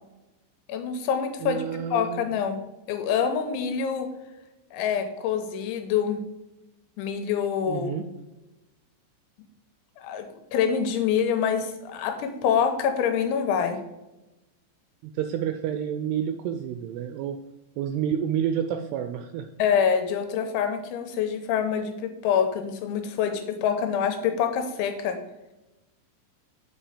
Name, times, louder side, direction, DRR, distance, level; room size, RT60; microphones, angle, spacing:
voice 1, 0.7-2.6 2.9-4.1 4.7-6.2 7.0-8.0 10.0-13.8 19.6-25.2, left 7 dB, 90° left, 6 dB, 3.3 m, -26 dB
voice 2, 1.4-2.3 7.7-8.0 15.0-17.4 17.8-19.5, right 9 dB, 85° right, 7 dB, 2.4 m, -29 dB
7.4 x 5.5 x 4.9 m, 1.0 s
omnidirectional pair, 5.2 m